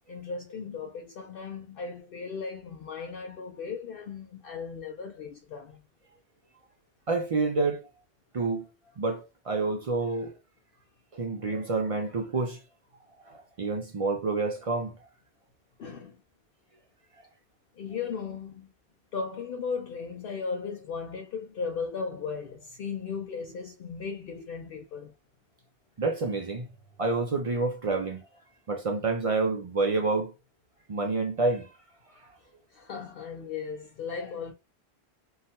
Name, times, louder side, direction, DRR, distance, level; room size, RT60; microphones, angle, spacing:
voice 1, 0.1-5.8 15.8-16.2 17.8-18.7 19.1-25.1 32.7-34.5, left 5 dB, 65° left, 0.7 m, -36 dB
voice 2, 7.1-7.8 8.3-8.7 9.0-10.3 11.1-12.6 13.3-15.0 26.0-26.7 27.0-28.2 28.7-30.3 30.9-31.7, right 3 dB, 50° right, 0.4 m, -28 dB
2.8 x 2.3 x 2.8 m
omnidirectional pair, 1.1 m